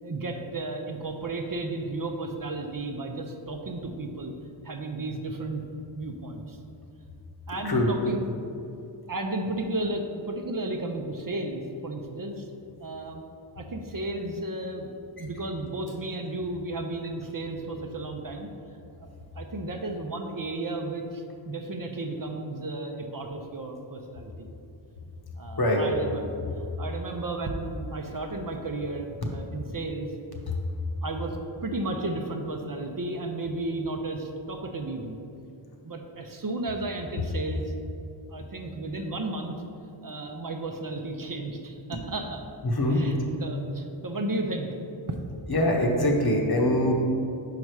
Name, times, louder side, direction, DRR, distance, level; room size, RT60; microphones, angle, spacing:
voice 1, 0.0-4.3 4.6-5.6 5.9-6.6 7.5-8.2 9.1-12.5 12.8-13.2 13.5-14.9 15.2-18.5 19.0-19.1 19.3-24.5 25.4-26.2 26.6-30.1 31.0-35.2 35.8-37.7 38.3-39.6 40.0-42.4 42.9-44.7 45.1-45.2, right 2 dB, 45° right, 3 dB, 0.6 m, -33 dB
voice 2, 42.6-43.2 45.5-46.9, left 1 dB, 50° left, 0 dB, 1.0 m, -23 dB
5.4 x 4.8 x 4.7 m, 2.6 s
wide cardioid pair, 55°, 48 cm